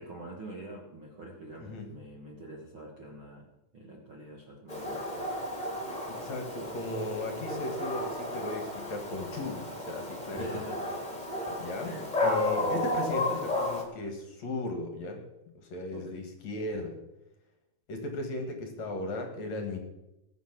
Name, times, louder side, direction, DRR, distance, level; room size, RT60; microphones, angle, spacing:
voice 1, 0.0-5.2 10.3-10.9 11.8-12.1 12.6-12.9 15.9-16.2, right 1 dB, 60° right, -1 dB, 1.3 m, -46 dB
voice 2, 1.6-1.9 6.1-10.5 11.6-12.0 12.2-15.3 15.6-17.0 17.9-19.8, left 2 dB, 55° left, 4 dB, 2.2 m, -36 dB
Dog, 4.7-13.8, left 2 dB, 15° left, 2.0 m, -33 dB
20.0 x 7.1 x 5.9 m, 0.94 s
omnidirectional pair, 4.7 m